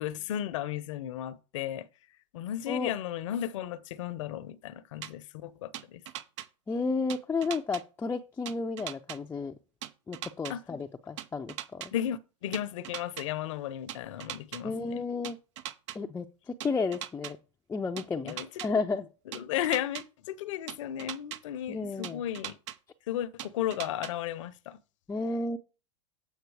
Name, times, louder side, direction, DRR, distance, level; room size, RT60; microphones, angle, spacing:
voice 1, 0.0-1.9 2.3-6.0 10.5-10.6 11.9-15.0 18.2-18.5 19.3-22.6 23.1-24.8, left 11 dB, 70° left, 0.8 m, -34 dB
sound 1, 5.0-5.1 5.7-6.5 7.1-7.8 8.5-9.2 9.8-10.5 11.2-11.9 12.5-13.3 13.9-14.6 15.2-16.0 16.6-17.3 18.0-18.7 19.3-20.0 20.7-21.4 22.0-22.8 23.4-24.1, right 12 dB, 65° right, 0.7 m, -39 dB
voice 2, 6.7-9.5 10.1-11.9 14.6-15.4 15.9-17.4 17.7-19.1 21.7-22.2 25.1-25.6, left 4 dB, 15° left, 0.5 m, -32 dB
8.2 x 6.2 x 4.8 m
hypercardioid pair, 100°, 17 cm